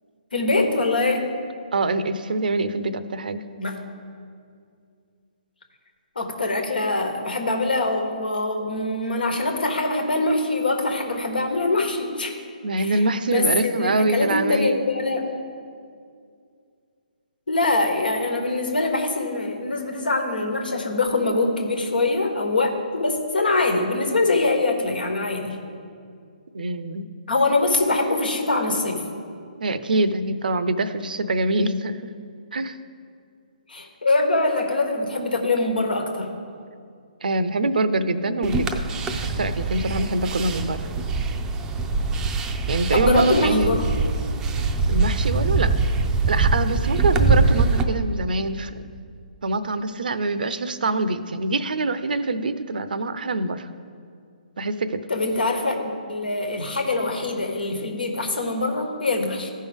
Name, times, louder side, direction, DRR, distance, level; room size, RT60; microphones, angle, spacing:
voice 1, 0.3-1.3 3.6-3.8 6.1-12.3 12.8-13.0 13.3-15.3 17.5-25.6 27.3-29.0 33.7-36.4 42.9-43.9 55.1-59.5, left 2 dB, 85° left, 4 dB, 1.4 m, -23 dB
voice 2, 1.7-3.4 12.6-14.8 26.5-27.0 29.6-32.0 32.5-32.8 37.2-38.8 39.4-40.8 42.7-43.8 44.9-45.7 46.3-48.8 49.4-53.7 54.6-55.0, right 2 dB, 75° right, 12 dB, 0.6 m, -24 dB
sound 1, 38.4-47.8, right 3 dB, 10° right, 0.5 m, -23 dB
15.0 x 5.5 x 3.5 m, 2.3 s
hypercardioid pair, 145°, 5 cm